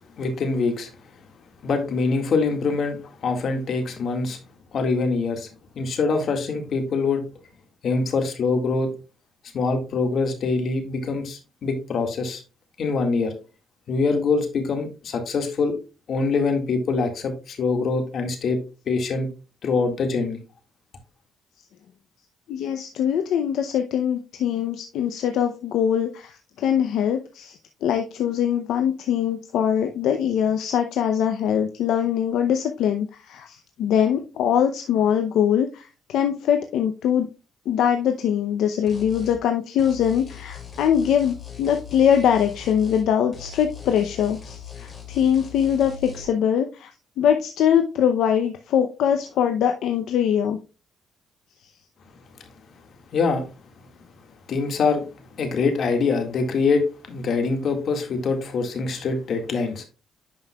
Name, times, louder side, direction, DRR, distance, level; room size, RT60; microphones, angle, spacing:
voice 1, 0.2-0.9 1.6-4.4 4.7-5.5 5.8-7.2 7.8-8.9 9.5-12.4 12.8-13.3 13.9-15.8 16.1-18.6 18.9-19.3 19.6-20.4 53.1-53.4 54.5-59.8, left 4 dB, 60° left, 5 dB, 1.9 m, -24 dB
voice 2, 22.5-37.3 37.7-46.9 47.2-50.6, left 9 dB, 80° left, 6 dB, 0.7 m, -22 dB
sound 1, 38.9-39.4 39.8-43.1 43.3-46.2, left 7 dB, 40° left, 2.6 m, -40 dB
10.5 x 5.4 x 2.3 m, 0.31 s
cardioid pair, 90°, 0 cm